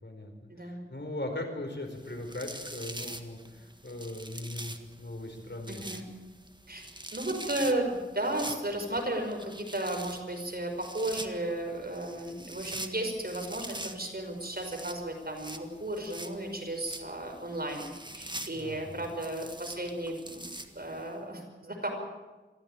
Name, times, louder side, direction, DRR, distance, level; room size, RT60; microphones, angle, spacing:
voice 1, 0.0-5.8 18.5-19.1, left 1 dB, 60° left, 4 dB, 4.4 m, -39 dB
sound 1, 1.9-21.1, right 1 dB, 20° right, 1.7 m, -45 dB
voice 2, 5.7-6.1 6.7-6.8 7.1-17.9 18.1-20.5 20.8-21.9, right 1 dB, 50° right, 3 dB, 5.4 m, -34 dB
24.0 x 15.0 x 9.1 m, 1.2 s
wide cardioid pair, 55°, 21 cm